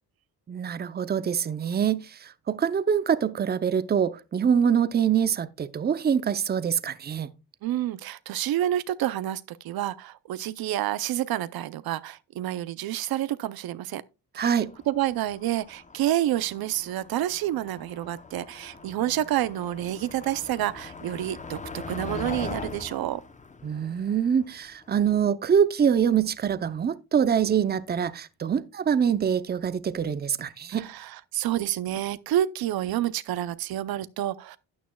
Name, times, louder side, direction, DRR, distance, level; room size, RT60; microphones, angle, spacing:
voice 1, 0.5-7.3 14.4-14.7 23.6-30.8, right 7 dB, 25° right, 0.6 m, -25 dB
voice 2, 7.6-14.0 14.3-23.2 30.7-34.6, right 13 dB, 75° right, 0.6 m, -29 dB
Motor vehicle (road), 14.5-24.8, left 4 dB, 20° left, 0.8 m, -41 dB
12.5 x 9.2 x 2.3 m
cardioid pair, 115°, 37 cm